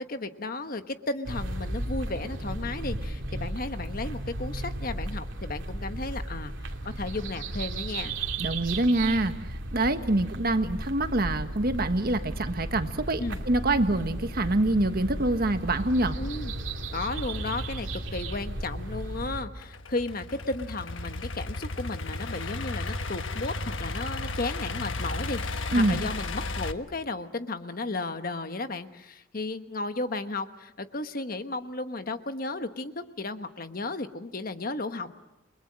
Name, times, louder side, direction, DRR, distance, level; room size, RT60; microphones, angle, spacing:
voice 1, 0.0-8.1 13.2-13.4 16.2-16.5 16.9-35.1, left 2 dB, 45° left, 9 dB, 1.2 m, -34 dB
sound 1, 1.3-19.4, right 1 dB, 70° right, 2.5 m, -35 dB
voice 2, 8.4-16.2 25.7-26.0, right 2 dB, 50° right, 8 dB, 1.4 m, -26 dB
Idling / Accelerating revving vroom, 19.6-26.7, left 2 dB, 75° left, 1.3 m, -34 dB
29.5 x 22.0 x 7.5 m, 0.94 s
head